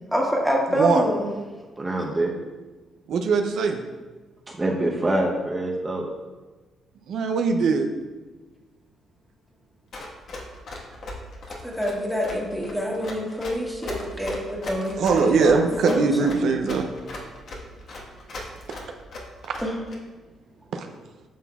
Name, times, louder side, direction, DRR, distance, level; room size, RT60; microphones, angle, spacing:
voice 1, 0.1-1.3 11.6-16.4 19.6-19.7, equal, ahead, -2 dB, 1.6 m, -26 dB
voice 2, 1.8-2.3 4.5-6.1, right 1 dB, 25° right, -2 dB, 0.8 m, -25 dB
voice 3, 3.1-3.8 7.1-7.9 15.0-16.9 20.7-20.9, right 4 dB, 70° right, 4 dB, 0.6 m, -21 dB
Run, 9.9-20.0, left 2 dB, 60° left, 1.4 m, -37 dB
9.2 x 6.1 x 2.4 m, 1.3 s
cardioid pair, 90°, 0 cm